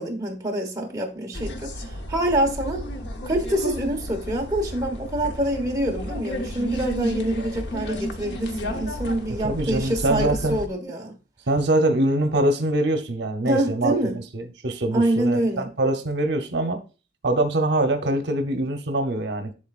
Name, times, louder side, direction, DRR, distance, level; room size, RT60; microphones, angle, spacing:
voice 1, 0.0-2.8 3.2-11.1 13.4-14.2 14.9-15.7, right 1 dB, 20° right, 1.2 m, -26 dB
sound 1, 1.3-10.7, equal, 80° left, 0.9 m, -32 dB
voice 2, 9.3-10.6 11.5-13.9 14.3-16.8 17.2-19.5, right 1 dB, 75° right, 0.9 m, -23 dB
11.0 x 3.8 x 2.4 m
head